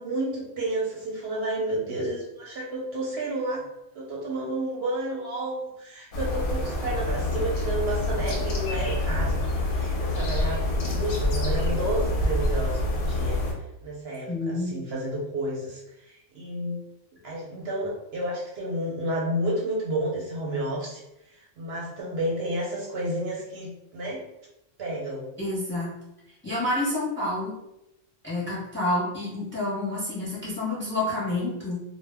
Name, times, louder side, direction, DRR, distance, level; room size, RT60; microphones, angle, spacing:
voice 1, 0.0-3.6 3.9-13.4 13.8-16.8 17.2-24.2 24.8-25.3, right 1 dB, 65° right, -3 dB, 0.7 m, -31 dB
sound 1, 6.1-13.5, left 1 dB, 60° left, 0.6 m, -26 dB
voice 2, 14.3-14.7 25.4-25.9 26.4-27.5 28.2-31.8, left 1 dB, 15° left, -6 dB, 0.6 m, -28 dB
2.1 x 2.0 x 3.3 m, 0.88 s
omnidirectional pair, 1.3 m